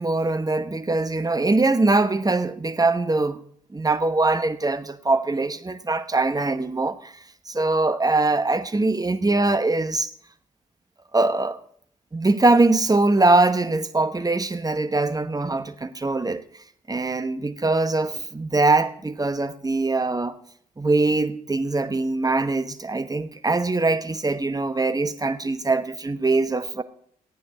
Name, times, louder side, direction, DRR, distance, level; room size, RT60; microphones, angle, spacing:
voice 1, 0.0-3.4 3.7-7.1 7.5-10.1 11.1-11.6 12.1-16.4 16.9-20.4 20.8-26.8, right 2 dB, 20° right, 1.1 m, -22 dB
15.0 x 9.0 x 5.4 m
hypercardioid pair, 40°, 19 cm